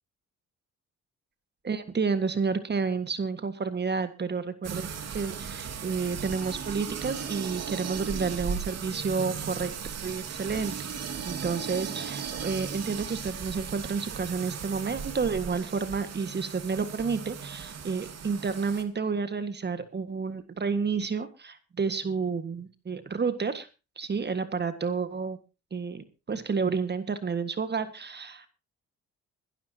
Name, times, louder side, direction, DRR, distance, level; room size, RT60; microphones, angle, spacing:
voice 1, 1.6-9.7 10.0-10.9 11.3-23.7 24.0-25.4 25.7-28.5, right 5 dB, 35° right, 11 dB, 1.7 m, -30 dB
sound 1, 4.6-18.8, right 6 dB, 55° right, 2.5 m, -37 dB
22.0 x 12.0 x 2.9 m, 0.30 s
cardioid pair, 90°, 30 cm